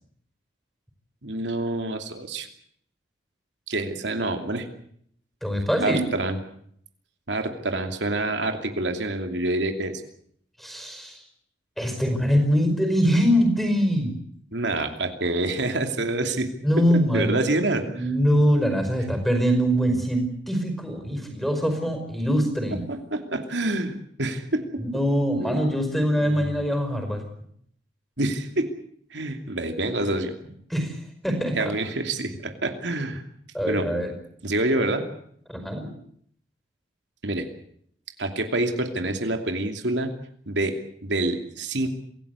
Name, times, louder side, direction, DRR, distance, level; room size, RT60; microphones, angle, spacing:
voice 1, 1.2-2.5 3.7-4.7 5.8-6.4 7.3-10.0 14.5-16.5 17.1-18.0 22.9-24.8 25.4-25.6 26.2-26.4 28.2-28.7 29.1-30.3 31.6-33.2 33.7-33.9 34.4-35.0 37.2-37.5 38.2-40.1 40.5-41.9, right 2 dB, 80° right, 5 dB, 2.8 m, -27 dB
voice 2, 5.4-6.0 10.6-11.2 11.8-14.2 16.6-17.5 17.8-22.9 24.8-27.2 30.7-31.7 33.5-34.1 35.5-35.9, equal, ahead, 6 dB, 5.1 m, -23 dB
26.5 x 17.0 x 8.2 m, 0.66 s
head